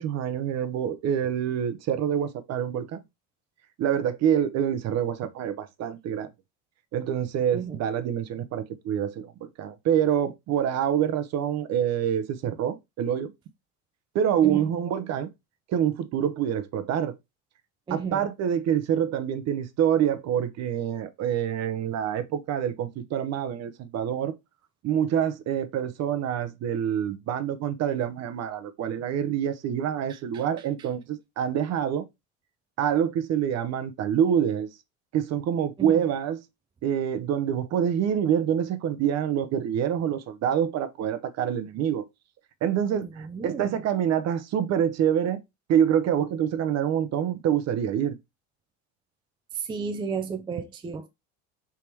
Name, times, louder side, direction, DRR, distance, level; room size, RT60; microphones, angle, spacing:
voice 1, 0.0-3.0 3.8-6.3 6.9-9.3 9.6-13.3 14.1-15.3 15.7-17.2 17.9-24.3 24.8-32.1 32.8-34.7 35.1-36.4 36.8-42.0 42.6-45.4 45.7-48.2, right 9 dB, 45° right, 0.7 m, -26 dB
voice 2, 14.4-14.7 17.9-18.3 35.8-36.0 42.9-43.7 49.5-51.1, right 5 dB, 15° right, 0.4 m, -33 dB
3.5 x 2.8 x 4.5 m
supercardioid pair, 110°, 35 cm